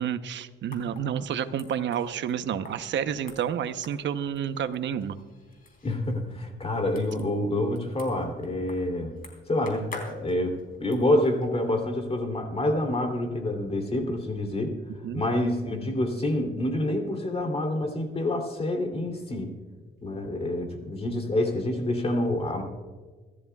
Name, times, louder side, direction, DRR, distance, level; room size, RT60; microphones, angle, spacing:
voice 1, 0.0-5.2 15.0-15.2, right 8 dB, 65° right, 10 dB, 0.9 m, -30 dB
sound 1, 0.7-11.7, left 3 dB, 45° left, 3.5 m, -48 dB
voice 2, 5.8-9.1 9.5-9.9 10.2-14.7 15.1-19.5 20.0-22.6, left 1 dB, 30° left, 4 dB, 3.0 m, -27 dB
23.5 x 13.5 x 2.4 m, 1.4 s
cardioid pair, 90°, 20 cm